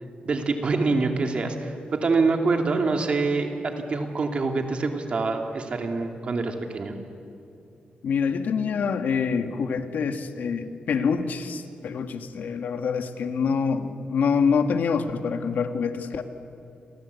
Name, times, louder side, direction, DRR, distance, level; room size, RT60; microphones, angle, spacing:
voice 1, 0.2-7.0, right 3 dB, 40° right, 4 dB, 2.6 m, -25 dB
voice 2, 8.0-16.2, left 5 dB, 70° left, 7 dB, 1.6 m, -26 dB
30.0 x 24.0 x 8.3 m, 2.7 s
wide cardioid pair, 175°, 3 cm